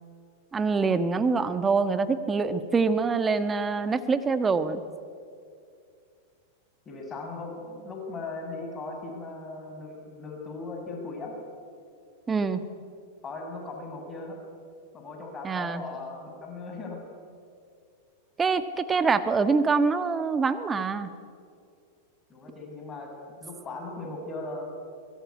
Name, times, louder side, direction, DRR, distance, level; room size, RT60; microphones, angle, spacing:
voice 1, 0.5-4.8 12.3-12.6 15.4-15.8 18.4-21.1, right 4 dB, 20° right, 11 dB, 1.5 m, -25 dB
voice 2, 6.8-11.3 13.2-14.4 14.9-17.0 22.3-23.1 23.4-24.6, left 3 dB, 25° left, 2 dB, 6.5 m, -38 dB
23.0 x 22.0 x 9.6 m, 2.3 s
hypercardioid pair, 100°, 0 cm